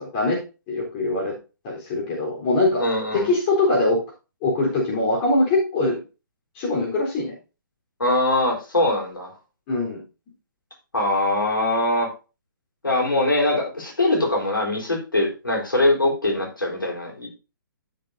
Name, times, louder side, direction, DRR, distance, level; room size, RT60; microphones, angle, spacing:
voice 1, 0.0-1.4 1.6-2.9 3.1-4.0 4.4-6.0 6.6-7.3 9.7-10.0, left 2 dB, 30° left, -2 dB, 3.7 m, -22 dB
voice 2, 2.8-3.3 8.0-9.3 10.9-12.1 12.8-17.3, left 1 dB, 75° left, -1 dB, 4.0 m, -22 dB
12.0 x 6.8 x 2.6 m, 0.30 s
figure-of-eight pair, 130°, 11 cm